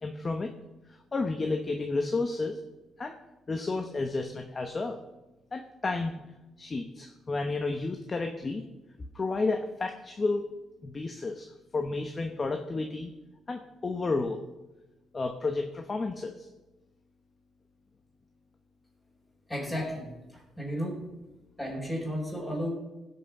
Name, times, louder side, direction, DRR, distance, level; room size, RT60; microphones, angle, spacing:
voice 1, 0.0-0.6 0.9-2.6 3.0-3.2 3.5-5.0 5.5-6.2 6.6-8.6 9.1-10.5 10.8-13.1 13.5-14.4 15.1-16.5, left 3 dB, 30° left, 5 dB, 1.1 m, -31 dB
voice 2, 19.5-21.1 21.6-22.7, equal, 10° left, -5 dB, 4.5 m, -34 dB
17.0 x 6.2 x 6.1 m, 1.0 s
cardioid pair, 90°, 0 cm